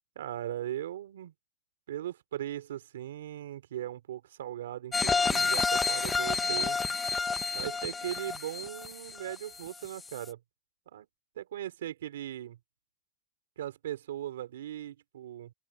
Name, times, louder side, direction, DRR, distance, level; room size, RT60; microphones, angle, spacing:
voice 1, 0.1-1.3 1.9-6.8 7.5-10.4 10.9-11.1 11.3-12.6 13.6-15.5, right 12 dB, 90° right, 3.1 m, -38 dB
sound 1, 4.9-9.7 10.1-10.2, left 4 dB, 15° left, 1.0 m, -29 dB
open air
supercardioid pair, 125°, 0 cm